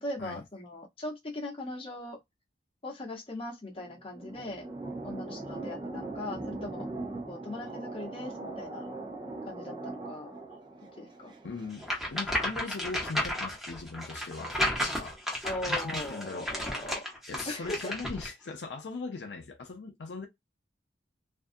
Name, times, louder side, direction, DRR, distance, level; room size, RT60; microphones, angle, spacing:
voice 1, 0.0-2.2 2.8-4.6 5.0-6.9 7.3-8.8 9.4-10.3 11.0-11.3 15.4-17.0 17.5-17.9, left 1 dB, 30° left, 0.9 m, -39 dB
sound 1, 3.7-12.2, right 2 dB, 25° right, 0.5 m, -40 dB
voice 2, 11.4-15.2 15.7-16.6 17.3-20.3, left 4 dB, 70° left, 0.5 m, -40 dB
sound 2, 11.8-18.3, equal, ahead, 0.9 m, -33 dB
2.5 x 2.3 x 2.5 m
head